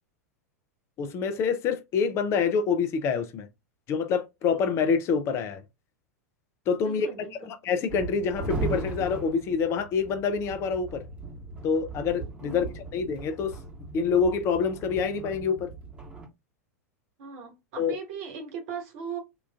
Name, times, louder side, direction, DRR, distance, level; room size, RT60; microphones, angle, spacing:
voice 1, 1.0-3.5 3.9-5.6 6.7-7.1 7.5-11.0 11.6-12.6 12.9-13.6 13.9-15.7 17.8-17.9, left 5 dB, 35° left, 0.5 m, -26 dB
voice 2, 6.8-7.5 12.4-12.7 17.2-19.2, right 6 dB, 50° right, 1.3 m, -38 dB
sound 1, 7.9-16.3, right 3 dB, 15° right, 1.0 m, -38 dB
3.8 x 2.4 x 2.2 m
figure-of-eight pair, 90°, 8 cm